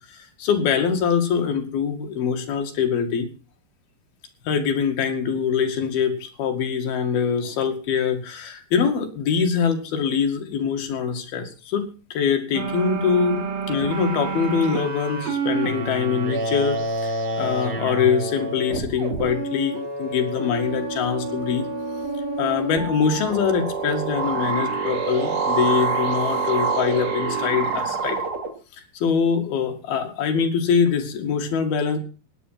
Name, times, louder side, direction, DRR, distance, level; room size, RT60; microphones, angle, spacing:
voice 1, 0.1-3.3 4.4-21.7 22.4-28.2 28.9-32.0, left 6 dB, 75° left, 5 dB, 4.2 m, -23 dB
sound 1, 12.5-28.5, right 4 dB, 50° right, 3.3 m, -27 dB
17.0 x 10.5 x 5.8 m, 0.35 s
omnidirectional pair, 4.4 m